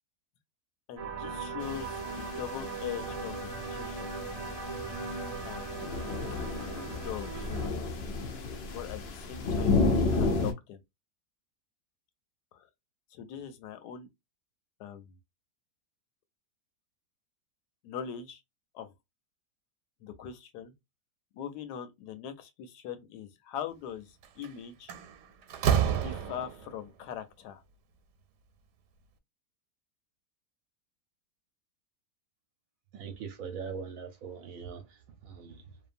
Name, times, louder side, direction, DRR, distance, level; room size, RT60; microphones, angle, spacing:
voice 1, 0.9-4.1 5.4-5.8 6.3-7.5 8.7-10.8 12.5-12.7 13.1-14.1 14.8-15.2 17.8-18.4 18.7-18.9 20.0-20.7 21.3-24.9 25.8-27.6, left 9 dB, 85° left, 1.2 m, -41 dB
sound 1, 1.0-7.7, right 4 dB, 35° right, 0.6 m, -39 dB
sound 2, 1.6-10.5, left 3 dB, 65° left, 0.6 m, -32 dB
Slam, 24.2-24.5 24.9-26.8, right 9 dB, 90° right, 1.2 m, -28 dB
voice 2, 32.9-35.8, right 6 dB, 65° right, 0.9 m, -42 dB
2.8 x 2.2 x 2.4 m
omnidirectional pair, 1.7 m